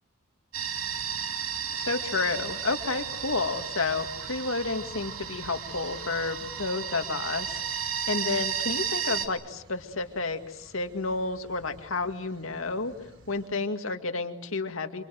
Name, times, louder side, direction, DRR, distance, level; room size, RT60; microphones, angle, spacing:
sound 1, 0.5-9.3, right 7 dB, 85° right, 2.7 m, -33 dB
voice 1, 1.7-12.9 13.3-15.0, left 3 dB, 75° left, 7 dB, 2.1 m, -31 dB
sound 2, 1.7-13.5, right 1 dB, 60° right, 4.6 m, -54 dB
27.5 x 25.5 x 7.8 m, 0.85 s
head